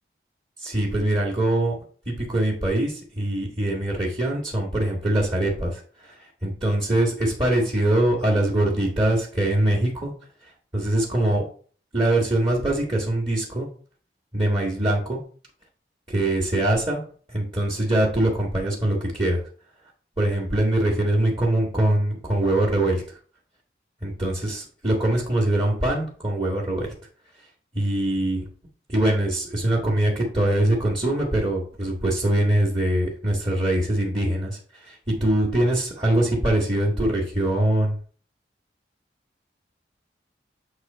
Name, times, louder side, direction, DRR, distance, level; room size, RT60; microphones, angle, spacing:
voice 1, 0.6-1.8 2.1-10.1 10.4-11.4 11.9-13.7 14.3-15.2 16.1-17.0 17.3-19.4 20.2-23.2 24.0-26.9 27.7-28.4 28.9-38.0, right 1 dB, 25° right, -3 dB, 1.5 m, -23 dB
8.0 x 3.1 x 5.4 m, 0.43 s
head